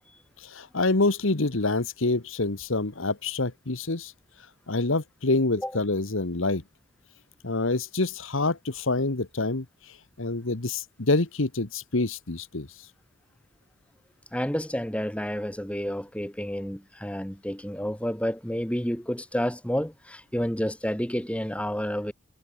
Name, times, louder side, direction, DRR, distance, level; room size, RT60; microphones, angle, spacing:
voice 1, 0.4-4.1 4.7-6.6 7.4-9.6 10.2-12.7, left 2 dB, 65° left, 1.4 m, -26 dB
voice 2, 14.3-22.1, equal, 5° left, 2.7 m, -30 dB
head